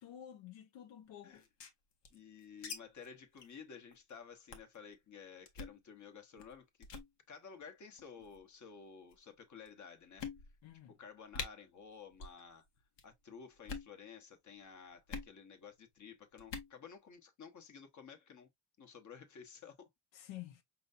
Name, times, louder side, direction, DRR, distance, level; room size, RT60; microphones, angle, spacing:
voice 1, 0.0-1.5 10.6-11.0 20.1-20.6, left 12 dB, 85° left, 1.0 m, -50 dB
sound 1, 1.3-2.8 3.0-3.1 3.4-3.6 3.9-4.1 4.5-4.8 5.5-5.8 6.4-6.6 6.8-7.1 8.0-8.4 9.1-9.2 9.7-9.8 10.2-10.7 11.0-11.1 11.3-11.5 12.1-12.4 12.7-13.1 13.6-13.9 15.1-15.3 16.4-16.7, left 5 dB, 70° left, 1.3 m, -45 dB
voice 2, 2.1-6.7 7.3-10.3 11.0-12.6 13.0-18.5 18.8-19.9, left 6 dB, 40° left, 1.2 m, -53 dB
5.5 x 3.0 x 2.6 m
cardioid pair, 150°, 43 cm